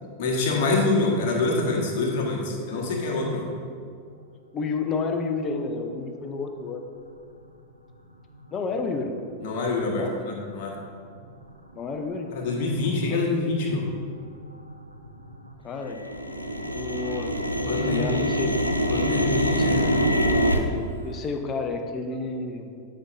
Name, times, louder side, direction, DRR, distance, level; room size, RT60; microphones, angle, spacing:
voice 1, 0.0-3.5 9.4-10.7 12.3-13.9 17.6-18.4 18.9-19.9, left 3 dB, 50° left, -1 dB, 1.5 m, -26 dB
voice 2, 4.5-6.8 8.5-9.1 10.0-10.1 11.7-12.3 15.6-16.0 16.5-17.4 17.6-18.5 19.5-19.7 21.0-22.7, left 4 dB, 25° left, 5 dB, 0.7 m, -30 dB
sound 1, 10.5-10.6 11.2-11.5 12.0-12.1 12.3-12.9 13.1-15.5 15.8-20.6, equal, 90° right, 0.5 m, -25 dB
11.5 x 5.6 x 2.7 m, 2.3 s
figure-of-eight pair, 90°, 0 cm